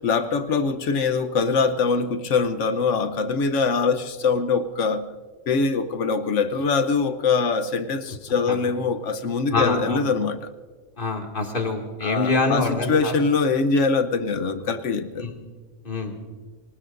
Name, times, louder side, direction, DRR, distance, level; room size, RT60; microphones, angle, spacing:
voice 1, 0.0-5.1 5.5-10.5 12.0-15.3, left 4 dB, 70° left, 1.2 m, -23 dB
voice 2, 9.5-10.0 11.0-13.1 15.2-15.3 15.8-16.2, left 3 dB, 40° left, 2.4 m, -25 dB
24.5 x 19.0 x 2.6 m
omnidirectional pair, 1.3 m